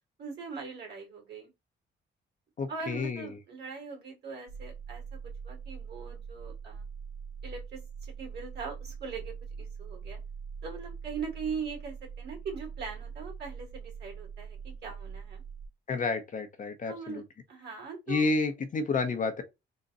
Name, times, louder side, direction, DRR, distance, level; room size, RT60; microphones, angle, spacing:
voice 1, 0.2-1.5 2.7-5.0 5.4-6.8 7.4-10.2 10.6-15.4 16.9-17.2 17.5-18.3, right 5 dB, 55° right, 2.2 m, -41 dB
voice 2, 2.6-3.3 15.9-17.2 18.1-19.4, left 3 dB, 40° left, 0.7 m, -30 dB
sound 1, 4.5-15.7, right 6 dB, 75° right, 1.0 m, -43 dB
3.8 x 2.1 x 3.9 m
cardioid pair, 90°, 20 cm